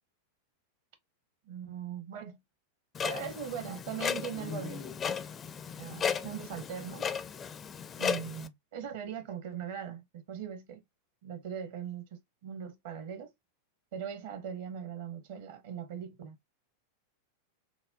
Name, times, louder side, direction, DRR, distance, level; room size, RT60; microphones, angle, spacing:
voice 1, 1.5-2.4 3.0-5.1 5.8-7.1 8.0-10.8 11.2-13.3 13.9-16.4, right 8 dB, 55° right, 0.8 m, -40 dB
Clock, 2.9-8.5, left 7 dB, 25° left, 0.4 m, -35 dB
5.9 x 2.2 x 2.5 m
figure-of-eight pair, 90°, 0 cm